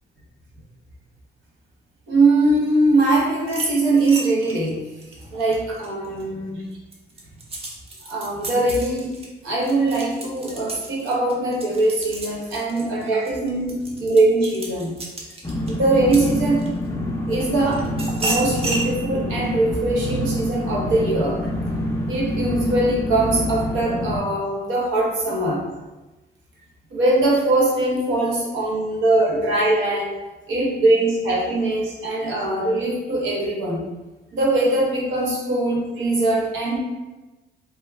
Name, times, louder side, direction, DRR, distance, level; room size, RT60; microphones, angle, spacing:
voice 1, 2.1-4.8 5.3-6.6 8.0-9.2 9.4-15.0 15.7-16.6 17.3-17.9 18.2-21.5 22.1-25.6 26.9-30.1 30.5-33.9 34.3-36.8, right 2 dB, 85° right, -3 dB, 0.8 m, -21 dB
sound 1, 3.4-6.2 6.7-16.9 17.4-18.9, right 2 dB, 30° right, 0.6 m, -33 dB
sound 2, 15.4-24.2, left 1 dB, 15° left, 0.4 m, -27 dB
2.3 x 2.2 x 3.1 m, 1.1 s
cardioid pair, 90°, 20 cm